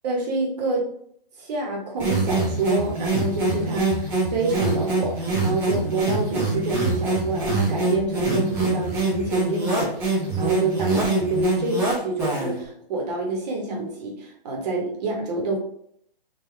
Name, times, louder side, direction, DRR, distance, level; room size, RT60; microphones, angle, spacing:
voice 1, 0.0-0.8 1.4-9.9 10.4-15.6, right 2 dB, 45° right, 0 dB, 1.2 m, -27 dB
sound 1, 2.0-12.6, right 2 dB, 10° right, 0.5 m, -24 dB
3.9 x 2.6 x 3.2 m, 0.69 s
hypercardioid pair, 150°, 29 cm